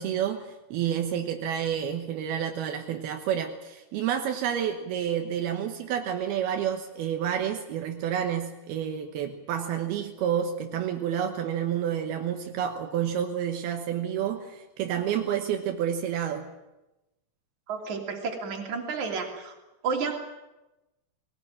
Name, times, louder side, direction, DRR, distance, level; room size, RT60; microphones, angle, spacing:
voice 1, 0.0-16.5, right 9 dB, 80° right, 4 dB, 3.1 m, -29 dB
voice 2, 17.7-19.5 19.8-20.1, right 5 dB, 50° right, 2 dB, 4.1 m, -31 dB
20.5 x 18.5 x 9.1 m, 1.0 s
omnidirectional pair, 4.5 m